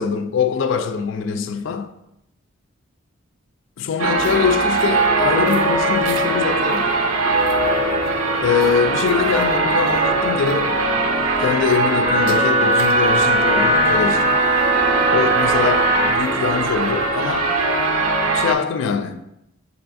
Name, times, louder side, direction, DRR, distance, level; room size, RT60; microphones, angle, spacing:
voice 1, 0.0-1.9 3.8-6.9 8.4-10.8 11.4-14.4 15.1-17.5 18.3-19.2, left 6 dB, 65° left, 0.3 m, -23 dB
sound 1, 4.0-18.6, right 3 dB, 90° right, 0.5 m, -20 dB
Wind instrument woodwind instrument, 12.0-16.2, right 1 dB, 30° right, 0.3 m, -19 dB
6.6 x 2.4 x 2.5 m
head